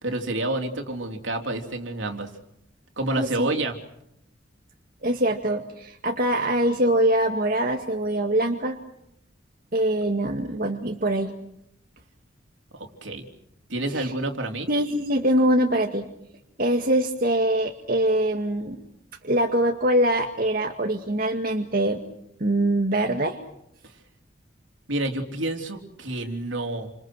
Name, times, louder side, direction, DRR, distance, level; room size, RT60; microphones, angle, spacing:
voice 1, 0.0-2.3 3.0-3.8 12.7-13.2 13.7-14.7 24.9-26.9, right 2 dB, 80° right, 4 dB, 3.5 m, -29 dB
voice 2, 3.2-3.5 5.0-8.8 9.7-11.3 13.9-14.1 14.7-16.0 16.6-18.8 19.2-22.0 22.4-23.4, right 1 dB, 50° right, 3 dB, 2.0 m, -23 dB
29.5 x 27.0 x 6.3 m, 0.77 s
head